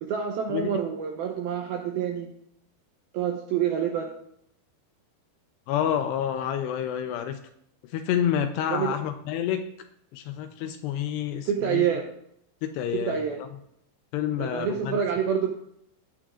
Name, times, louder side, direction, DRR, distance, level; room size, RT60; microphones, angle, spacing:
voice 1, 0.0-2.3 3.1-4.1 8.7-9.0 11.5-12.1 12.9-13.4 14.4-15.5, right 8 dB, 85° right, 3 dB, 2.2 m, -27 dB
voice 2, 5.7-7.4 7.9-9.6 10.1-11.9 12.6-13.5 14.1-15.0, left 9 dB, 80° left, 7 dB, 2.6 m, -28 dB
17.0 x 9.3 x 2.5 m, 0.73 s
omnidirectional pair, 5.3 m